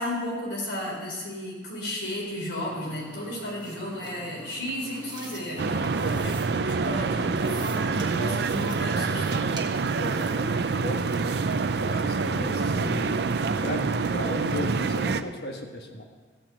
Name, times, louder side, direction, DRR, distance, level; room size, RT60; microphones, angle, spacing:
voice 1, 0.0-9.6 12.5-12.9, left 1 dB, 75° left, -3 dB, 4.2 m, -34 dB
sound 1, 2.6-10.4, right 2 dB, 25° right, 1.5 m, -44 dB
sound 2, 5.6-15.2, right 4 dB, 60° right, 0.5 m, -26 dB
voice 2, 6.1-6.7 10.0-11.5 11.8-13.2 13.6-16.0, left 1 dB, 55° left, 2 dB, 1.6 m, -36 dB
15.5 x 5.9 x 8.1 m, 1.4 s
head